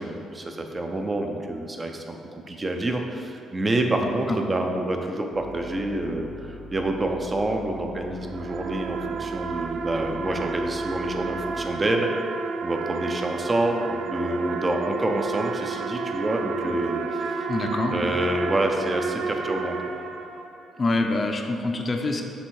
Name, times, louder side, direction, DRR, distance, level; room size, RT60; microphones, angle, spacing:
voice 1, 0.0-12.1 12.6-17.5 17.9-19.9, right 1 dB, 25° right, 3 dB, 0.6 m, -27 dB
voice 2, 4.0-4.4 17.5-18.0 20.8-22.2, left 2 dB, 35° left, 4 dB, 0.6 m, -26 dB
sound 1, 5.3-11.7, left 1 dB, 90° right, 1.0 m, -43 dB
sound 2, 8.0-20.8, right 4 dB, 70° right, 0.3 m, -32 dB
7.1 x 3.3 x 4.7 m, 2.5 s
cardioid pair, 90°, 0 cm